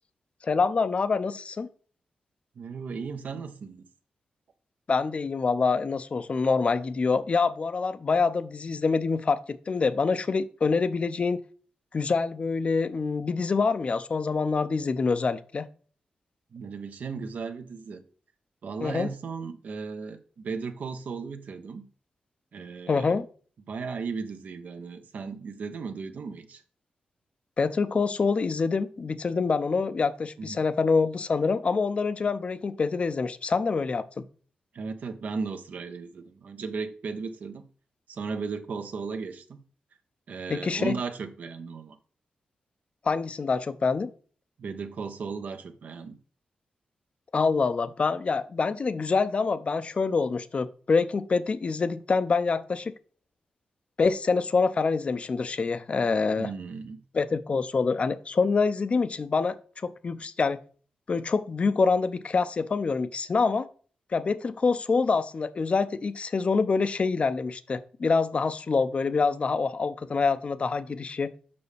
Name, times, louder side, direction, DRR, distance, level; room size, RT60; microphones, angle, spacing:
voice 1, 0.4-1.7 4.9-11.4 11.9-15.7 18.8-19.1 22.9-23.3 27.6-34.2 40.5-40.9 43.0-44.1 47.3-52.9 54.0-56.5 57.1-60.6 61.1-63.7 64.1-71.3, left 4 dB, 45° left, 13 dB, 0.5 m, -26 dB
voice 2, 2.5-3.9 16.5-18.0 18.6-21.9 22.5-23.2 23.7-26.6 30.4-30.6 34.7-37.6 38.1-39.6 40.3-42.0 44.6-46.2 56.4-57.0, right 5 dB, 70° right, 8 dB, 0.8 m, -36 dB
6.9 x 5.5 x 3.3 m, 0.43 s
cardioid pair, 85°, 3 cm